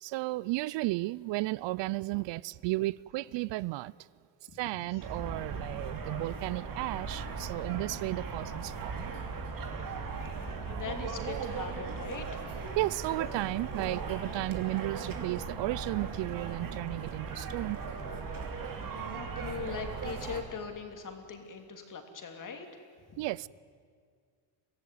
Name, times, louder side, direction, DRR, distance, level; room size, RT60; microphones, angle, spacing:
voice 1, 0.0-3.9 4.5-9.0 12.7-17.8 23.2-23.5, right 19 dB, 65° right, 0.5 m, -34 dB
sound 1, 5.0-20.4, right 5 dB, 45° right, 2.8 m, -38 dB
voice 2, 10.3-12.5 18.4-22.7 23.1-23.2, left 6 dB, 40° left, 3.0 m, -42 dB
24.0 x 15.5 x 9.4 m
cardioid pair, 115°, 47 cm